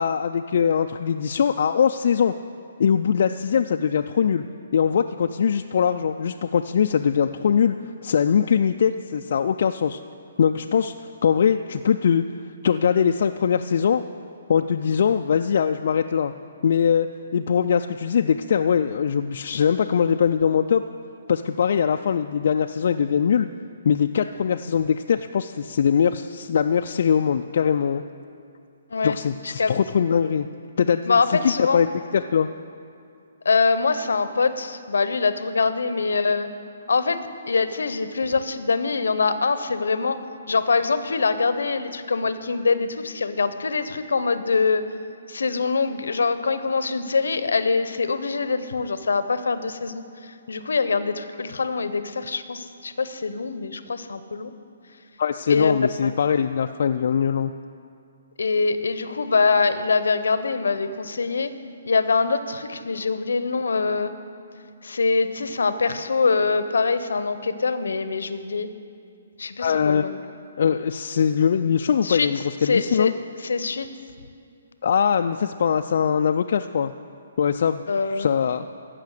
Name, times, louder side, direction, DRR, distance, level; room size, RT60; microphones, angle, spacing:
voice 1, 0.0-2.3 2.8-4.4 4.7-7.8 8.0-10.0 10.4-10.9 11.2-12.2 12.6-14.0 14.5-16.3 16.6-17.1 17.3-20.8 21.3-23.5 23.8-28.0 29.0-30.5 30.8-31.9 32.1-32.5 55.2-57.5 69.6-70.0 70.6-73.1 74.8-76.9 77.4-78.7, left 7 dB, 60° left, 6 dB, 0.3 m, -21 dB
voice 2, 31.1-31.8 33.4-36.5 36.9-40.2 40.5-44.8 45.3-54.5 55.5-55.7 56.0-56.1 58.4-61.5 61.9-64.1 64.8-68.7 69.4-70.1 72.0-72.3 72.6-73.1 73.4-73.9 77.9-78.3, left 4 dB, 80° left, 12 dB, 0.7 m, -24 dB
14.5 x 5.8 x 6.5 m, 2.4 s
hypercardioid pair, 150°, 0 cm